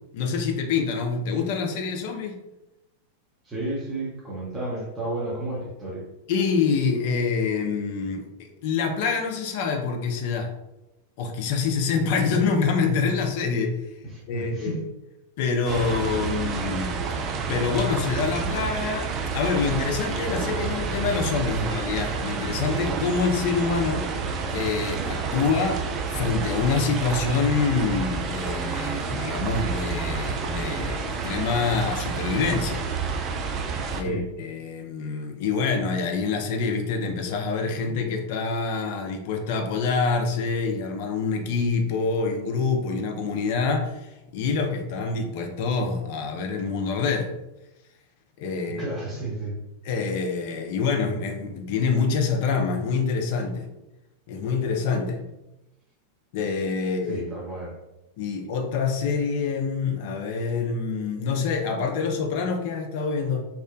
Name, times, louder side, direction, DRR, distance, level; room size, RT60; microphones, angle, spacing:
voice 1, 0.1-2.4 6.3-10.5 11.2-13.8 14.3-14.8 15.4-17.0 17.5-24.1 24.5-25.8 26.1-32.8 33.9-47.3 48.4-48.8 49.8-53.7 54.3-55.2 56.3-57.2 58.2-63.4, left 5 dB, 50° left, 4 dB, 0.4 m, -26 dB
voice 2, 3.4-6.1 14.0-14.9 33.9-34.2 48.8-49.6 57.1-57.7, right 2 dB, 15° right, -7 dB, 0.8 m, -32 dB
sound 1, 15.7-34.0, right 5 dB, 35° right, 0.3 m, -29 dB
2.7 x 2.1 x 2.4 m, 0.93 s
figure-of-eight pair, 90°, 0 cm